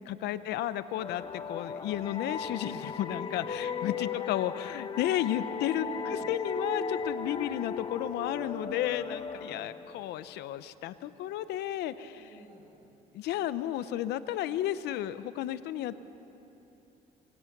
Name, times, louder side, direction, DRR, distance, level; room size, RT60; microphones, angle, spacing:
voice 1, 0.1-5.9 6.3-12.2 13.1-16.0, left 12 dB, 80° left, 14 dB, 0.8 m, -33 dB
sound 1, 1.0-10.4, left 5 dB, 30° left, 1.0 m, -37 dB
voice 2, 3.5-3.9 5.7-6.3 9.3-10.1 12.1-12.9, equal, 50° right, -2 dB, 7.1 m, -51 dB
25.0 x 20.5 x 6.0 m, 3.0 s
cardioid pair, 110°, 17 cm